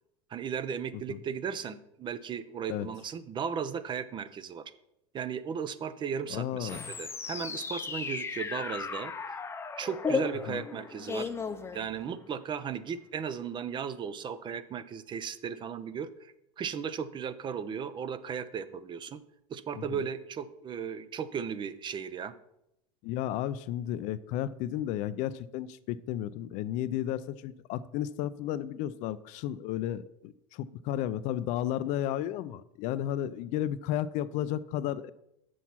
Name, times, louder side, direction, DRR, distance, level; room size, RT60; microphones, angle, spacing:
voice 1, 0.3-4.7 5.1-9.4 9.8-11.3 11.7-19.2 19.5-22.3, right 7 dB, 30° right, 14 dB, 0.6 m, -36 dB
voice 2, 6.3-6.9 10.5-10.6 19.8-20.0 23.0-35.1, left 11 dB, 55° left, 15 dB, 0.5 m, -33 dB
sound 1, 6.7-12.3, left 5 dB, 15° left, 0.7 m, -35 dB
7.0 x 6.2 x 5.8 m, 0.82 s
supercardioid pair, 100°, 15 cm